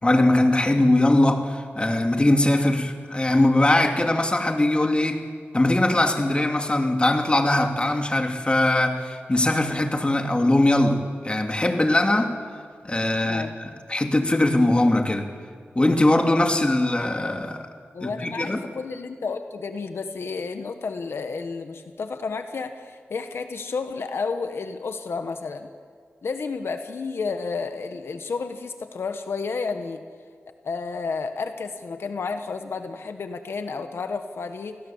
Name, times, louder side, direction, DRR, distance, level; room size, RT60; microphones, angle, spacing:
voice 1, 0.0-5.3 5.5-12.3 12.8-15.3 15.7-17.7 18.0-18.6, left 1 dB, 25° left, 4 dB, 2.6 m, -21 dB
voice 2, 13.2-13.5 17.9-25.7 26.2-30.0 30.6-34.8, left 4 dB, 85° left, 7 dB, 1.4 m, -31 dB
28.5 x 19.5 x 7.3 m, 2.1 s
wide cardioid pair, 65°, 4 cm